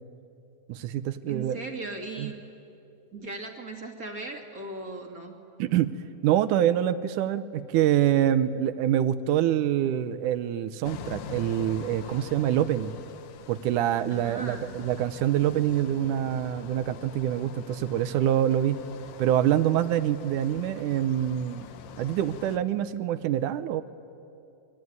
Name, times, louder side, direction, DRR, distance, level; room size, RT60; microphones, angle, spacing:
voice 1, 0.7-1.6 2.2-2.3 5.6-5.9 6.2-13.0 13.5-18.8 19.2-21.7 22.0-23.8, right 11 dB, 75° right, 13 dB, 2.0 m, -25 dB
voice 2, 1.3-2.4 3.1-5.3 14.1-14.7, right 3 dB, 30° right, 2 dB, 2.0 m, -38 dB
sound 1, 10.8-22.6, left 8 dB, 75° left, 2.7 m, -44 dB
27.5 x 23.0 x 9.5 m, 2.7 s
omnidirectional pair, 4.2 m